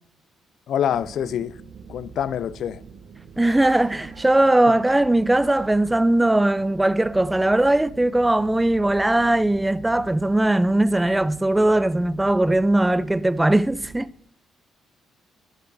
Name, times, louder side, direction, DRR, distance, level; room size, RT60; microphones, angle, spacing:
voice 1, 0.7-1.6 1.9-2.8 4.7-4.8, left 9 dB, 70° left, 0.4 m, -26 dB
sound 1, 0.9-14.0, right 6 dB, 65° right, 1.2 m, -44 dB
sound 2, 3.3-5.6 11.1-11.2 13.0-13.1, right 5 dB, 85° right, 4.1 m, -51 dB
voice 2, 3.4-14.1, right 1 dB, 10° right, 0.5 m, -19 dB
20.5 x 10.0 x 2.6 m
cardioid pair, 90°, 0 cm